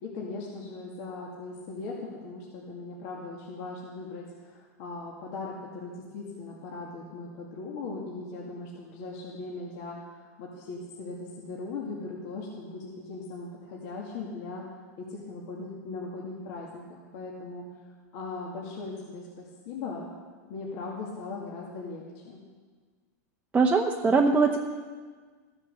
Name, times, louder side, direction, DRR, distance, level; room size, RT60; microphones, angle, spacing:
voice 1, 0.0-14.6 15.0-17.6 18.1-20.0 20.5-22.4, left 3 dB, 55° left, -4 dB, 2.2 m, -39 dB
voice 2, 23.5-24.6, right 4 dB, 15° right, 1 dB, 0.8 m, -21 dB
15.0 x 7.4 x 6.8 m, 1.5 s
supercardioid pair, 130°, 9 cm